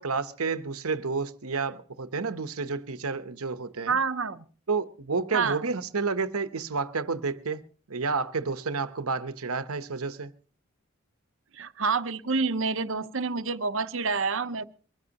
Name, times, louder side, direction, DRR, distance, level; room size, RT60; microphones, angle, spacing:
voice 1, 0.0-4.0 4.7-7.6 7.9-10.3, right 4 dB, 90° right, 1.0 m, -30 dB
voice 2, 3.9-4.5 5.3-5.7 11.5-14.6, right 4 dB, 65° right, 0.8 m, -28 dB
23.5 x 15.0 x 2.9 m
head